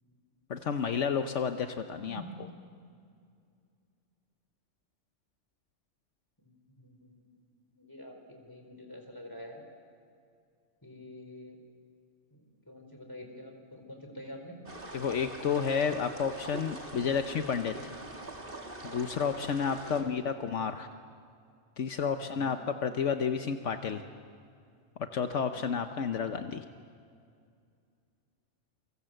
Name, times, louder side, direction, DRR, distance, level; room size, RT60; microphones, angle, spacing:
voice 1, 0.5-2.2 14.9-17.9 18.8-20.9 21.8-24.0 25.1-26.6, left 6 dB, 75° left, 7 dB, 1.3 m, -31 dB
voice 2, 6.4-7.1 7.4-9.6 10.8-11.6 12.3-14.6 19.8-20.2 22.2-22.5, left 1 dB, 15° left, 3 dB, 4.2 m, -47 dB
sound 1, 14.7-20.0, right 2 dB, 45° right, 2.5 m, -44 dB
28.5 x 24.0 x 7.9 m, 2.3 s
omnidirectional pair, 1.3 m